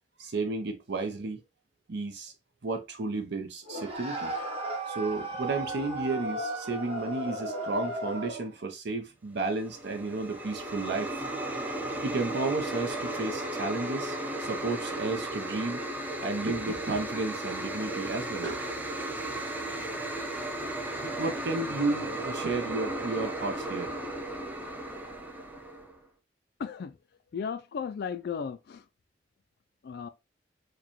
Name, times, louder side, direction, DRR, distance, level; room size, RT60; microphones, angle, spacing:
voice 1, 0.2-1.4 1.9-2.3 2.6-4.3 4.9-11.3 12.0-15.8 16.2-18.8 21.0-23.9, right 3 dB, 65° right, 0.6 m, -32 dB
sound 1, 3.7-8.5, right 2 dB, 35° right, 1.1 m, -35 dB
sound 2, 9.5-26.0, right 1 dB, 10° right, 0.5 m, -35 dB
voice 2, 26.6-27.0 27.3-28.9 29.8-30.1, left 6 dB, 60° left, 0.3 m, -35 dB
4.8 x 2.2 x 3.0 m
head